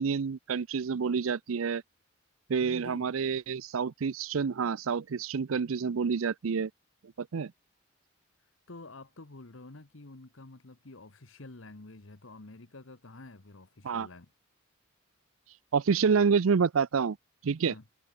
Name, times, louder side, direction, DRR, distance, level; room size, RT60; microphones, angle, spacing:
voice 1, 0.0-1.8 2.5-6.7 7.2-7.5 13.8-14.1 15.7-17.2 17.4-17.7, right 6 dB, 80° right, 0.5 m, -28 dB
voice 2, 2.6-3.1 8.7-14.3 17.6-17.8, left 2 dB, 70° left, 1.4 m, -48 dB
head